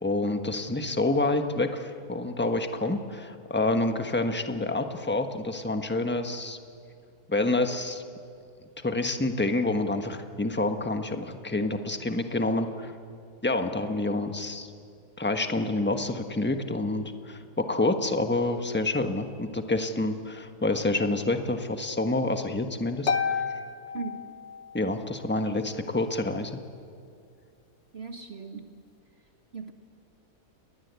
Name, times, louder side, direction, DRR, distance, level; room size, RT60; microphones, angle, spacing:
voice 1, 0.0-6.6 7.3-8.0 8.8-12.9 13.4-14.7 15.2-23.4 24.7-26.6, left 2 dB, 5° left, 6 dB, 1.2 m, -28 dB
Harp, 23.1-24.9, left 6 dB, 50° left, 1.4 m, -30 dB
voice 2, 27.9-28.6 29.5-29.7, right 4 dB, 40° right, 5 dB, 1.5 m, -37 dB
28.5 x 21.0 x 8.3 m, 2.4 s
omnidirectional pair, 1.7 m